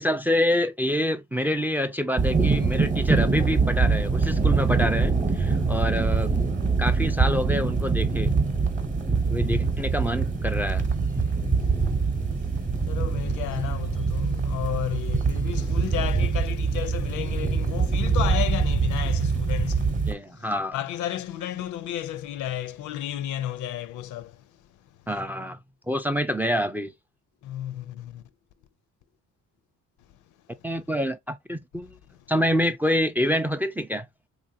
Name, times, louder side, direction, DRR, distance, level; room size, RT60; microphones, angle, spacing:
voice 1, 0.0-6.3 6.8-8.3 9.3-10.8 20.1-20.8 25.1-25.6 25.9-26.9 30.6-31.9 32.3-34.1, equal, 5° right, 0.3 m, -26 dB
sound 1, 2.2-20.1, right 4 dB, 25° right, 0.9 m, -24 dB
voice 2, 9.3-9.7 11.2-12.1 12.8-24.6 27.4-28.2 32.1-32.2, left 11 dB, 75° left, 0.5 m, -33 dB
3.1 x 2.5 x 2.6 m
cardioid pair, 90°, 30 cm